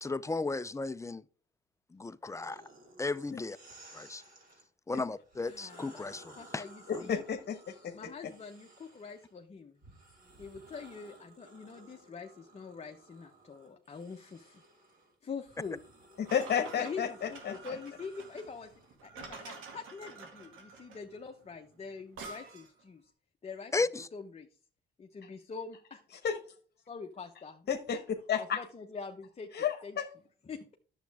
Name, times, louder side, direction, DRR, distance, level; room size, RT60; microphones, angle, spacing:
voice 1, 0.0-1.2 1.9-2.6 3.0-3.6 3.9-4.2 4.9-6.6 6.9-7.1 23.7-24.1, left 3 dB, 15° left, 0.5 m, -35 dB
sound 1, 2.4-4.7 5.2-9.3 9.8-19.0, right 2 dB, 45° right, 4.0 m, -57 dB
voice 2, 5.4-7.2 7.9-9.8 10.4-14.6 15.2-15.8 16.8-18.7 19.0-23.1 23.4-23.7 24.1-24.5 25.0-26.0 26.9-27.7 28.4-29.5 29.8-30.0 30.4-30.7, left 5 dB, 30° left, 0.9 m, -44 dB
voice 3, 6.9-7.9 16.2-17.6 26.2-26.4 27.7-28.6 29.5-30.1, left 7 dB, 55° left, 1.2 m, -32 dB
sound 2, 16.3-22.8, right 4 dB, 90° right, 2.1 m, -49 dB
10.0 x 7.3 x 3.5 m
cardioid pair, 90°, 20 cm